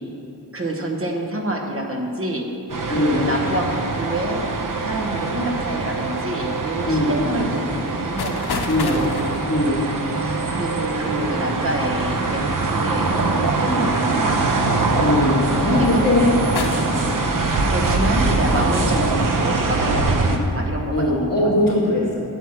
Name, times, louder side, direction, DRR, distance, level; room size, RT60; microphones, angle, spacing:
voice 1, 0.5-2.5 2.9-4.4 4.8-9.1 10.1-14.4 15.8-16.3 16.7-17.1 17.7-21.3 21.7-21.8, right 1 dB, 35° right, 1 dB, 1.1 m, -27 dB
sound 1, 2.7-20.4, right 3 dB, 55° right, 0.8 m, -23 dB
voice 2, 2.9-3.2 6.9-7.2 8.7-9.0 9.5-9.8 15.0-16.3 17.0-17.2 18.2-18.5 18.9-19.1 20.3-20.4 20.9-22.2, left 1 dB, 20° left, -12 dB, 2.2 m, -21 dB
sound 2, 8.2-11.7 12.8-13.3 14.1-14.2 14.8-15.2 15.7-16.2 16.5-17.5, left 4 dB, 75° left, 0.8 m, -32 dB
9.0 x 4.6 x 7.2 m, 2.6 s
wide cardioid pair, 100°, 39 cm